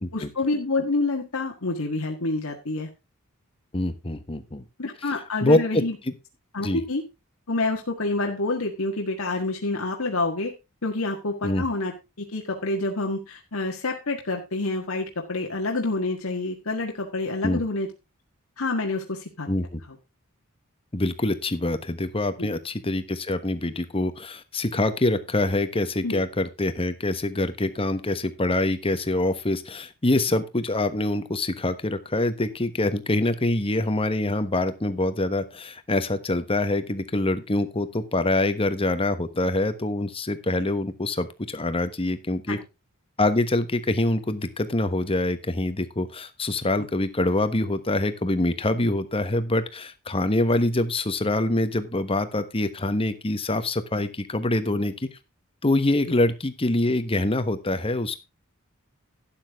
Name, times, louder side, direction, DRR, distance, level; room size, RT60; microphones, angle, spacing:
voice 1, 0.1-2.9 4.8-6.0 6.5-7.0 7.5-10.5 10.8-17.9 18.6-19.5 19.9-20.0 22.4-22.5 26.0-26.2 42.5-42.6 46.8-46.9, left 2 dB, 80° left, 1 dB, 1.7 m, -28 dB
voice 2, 3.7-4.6 5.4-6.1 6.6-6.8 11.4-11.6 17.4-17.6 19.5-19.8 20.9-42.6 43.2-55.1 55.6-58.1, left 2 dB, 25° left, 10 dB, 1.2 m, -25 dB
12.5 x 8.8 x 3.6 m, 0.27 s
head